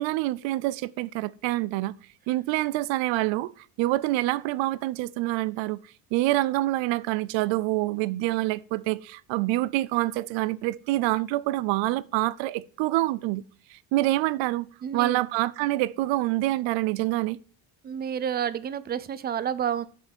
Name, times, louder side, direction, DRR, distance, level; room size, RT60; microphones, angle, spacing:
voice 1, 0.0-1.9 2.3-3.5 3.8-5.8 6.1-13.4 13.7-14.7 14.9-17.4, right 17 dB, 80° right, 0.6 m, -26 dB
voice 2, 14.8-15.2 17.8-19.9, right 8 dB, 25° right, 0.4 m, -29 dB
7.4 x 6.9 x 5.2 m
cardioid pair, 160°, 44 cm